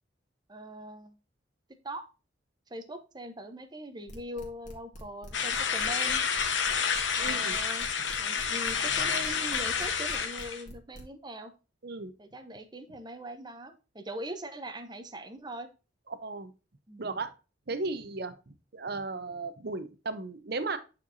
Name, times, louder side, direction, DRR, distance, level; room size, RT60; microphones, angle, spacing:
voice 1, 0.5-1.2 1.8-2.0 2.7-6.2 7.2-7.9 8.2-11.5 12.2-15.7 16.9-17.2, right 1 dB, 25° right, 8 dB, 0.9 m, -41 dB
sound 1, 4.1-11.0, equal, 40° left, 2.0 m, -46 dB
sound 2, 5.3-10.6, left 6 dB, 80° left, 1.1 m, -29 dB
voice 2, 7.2-7.6 11.8-12.1 16.2-16.5 17.0-17.3 17.7-20.8, right 3 dB, 55° right, 11 dB, 0.8 m, -35 dB
8.6 x 4.6 x 2.7 m, 0.31 s
head